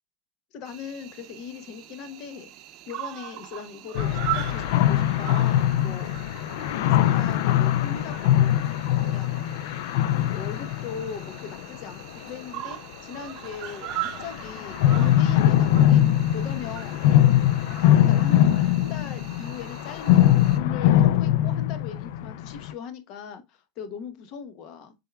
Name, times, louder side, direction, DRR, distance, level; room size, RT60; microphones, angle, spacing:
voice 1, 0.5-2.5 2.9-6.2 6.8-8.7 9.1-17.0 17.8-24.9, left 7 dB, 50° left, 0.9 m, -39 dB
Cricket, 0.6-20.6, right 15 dB, 50° right, 0.6 m, -40 dB
sound 1, 4.0-12.2 13.9-22.7, left 12 dB, 80° left, 0.3 m, -21 dB
6.7 x 3.5 x 2.3 m
supercardioid pair, 145°, 0 cm